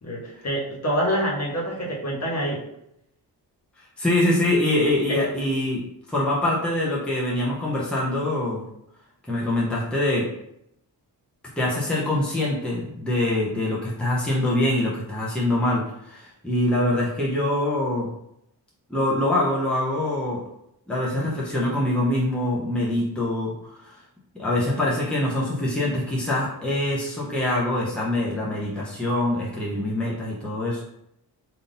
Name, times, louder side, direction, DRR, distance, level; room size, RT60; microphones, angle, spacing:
voice 1, 0.0-2.6 5.1-5.2, equal, 40° left, -4 dB, 1.4 m, -26 dB
voice 2, 3.8-5.8 6.1-8.7 9.3-10.3 11.6-18.1 18.9-20.4 20.9-24.0 24.3-30.8, left 1 dB, ahead, -6 dB, 0.9 m, -24 dB
3.6 x 2.8 x 3.8 m, 0.80 s
wide cardioid pair, 105°, 42 cm